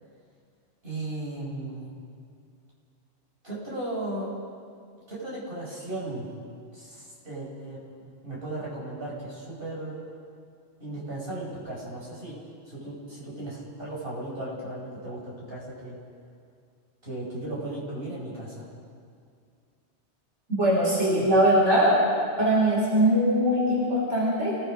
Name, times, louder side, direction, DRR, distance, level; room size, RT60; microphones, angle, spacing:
voice 1, 0.8-1.9 3.4-4.4 5.1-6.3 6.7-10.0 10.8-12.4 12.7-16.0 17.0-18.7, right 1 dB, 50° right, -6 dB, 6.0 m, -36 dB
voice 2, 20.5-22.0 22.4-24.6, equal, 75° right, -5 dB, 5.2 m, -21 dB
28.5 x 18.0 x 5.2 m, 2.3 s
omnidirectional pair, 1.2 m